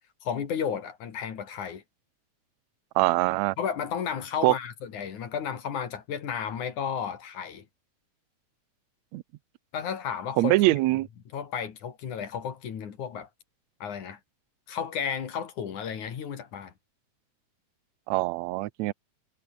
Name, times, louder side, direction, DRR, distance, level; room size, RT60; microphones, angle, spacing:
voice 1, 0.2-1.8 3.6-7.7 9.7-10.6 11.3-13.3 13.8-14.2 14.7-16.7, left 7 dB, 65° left, 3.7 m, -33 dB
voice 2, 2.9-3.5 4.4-4.5 9.1-9.2 10.4-11.1 18.1-18.9, right 18 dB, 75° right, 1.7 m, -23 dB
omnidirectional pair, 3.9 m